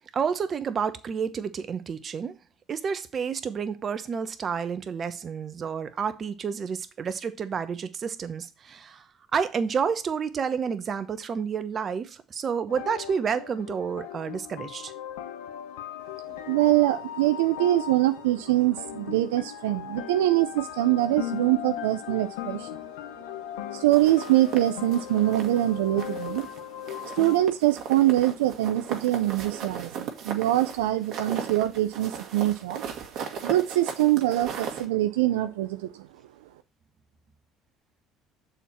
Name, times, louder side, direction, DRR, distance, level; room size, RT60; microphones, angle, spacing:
voice 1, 0.1-2.3 2.7-9.0 9.3-14.9, right 6 dB, 45° right, 1.0 m, -30 dB
sound 1, 12.7-27.5, left 11 dB, 85° left, 1.0 m, -38 dB
voice 2, 16.4-22.8 23.5-26.5 27.1-32.8 33.4-36.1, right 15 dB, 85° right, 0.4 m, -24 dB
sound 2, 23.9-25.7 26.0-26.6 26.9-34.9, right 7 dB, 60° right, 1.8 m, -37 dB
7.0 x 4.3 x 5.8 m
hypercardioid pair, 70°, 0 cm